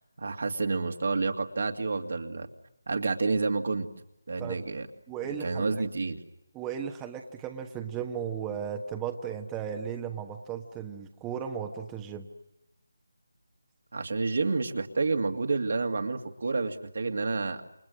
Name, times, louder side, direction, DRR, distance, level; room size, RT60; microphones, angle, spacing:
voice 1, 0.0-2.5 2.9-3.9 4.3-4.9 5.4-6.2 13.9-17.6, right 3 dB, 60° right, 5 dB, 2.3 m, -29 dB
voice 2, 5.1-5.7 6.5-12.3, right 8 dB, 10° right, 3 dB, 1.3 m, -35 dB
29.0 x 28.5 x 6.5 m, 0.87 s
figure-of-eight pair, 160°, 0 cm